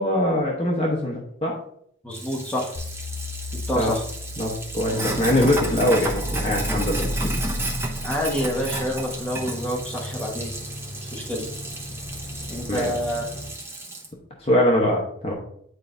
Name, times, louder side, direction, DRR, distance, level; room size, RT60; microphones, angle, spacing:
voice 1, 0.0-1.5 3.8-3.9 4.4-7.1 12.7-12.9 14.4-15.3, left 1 dB, 30° left, -2 dB, 0.9 m, -22 dB
voice 2, 2.0-2.7 3.7-4.0 8.0-10.5 11.1-11.5 12.5-13.3, equal, 5° left, -3 dB, 1.3 m, -27 dB
Sink (filling or washing), 2.1-14.1, right 2 dB, 15° right, 0.7 m, -33 dB
sound 1, 2.8-9.0, left 1 dB, 75° left, 1.1 m, -33 dB
sound 2, 5.0-13.5, equal, 55° left, 1.8 m, -38 dB
9.1 x 4.6 x 2.6 m, 0.67 s
head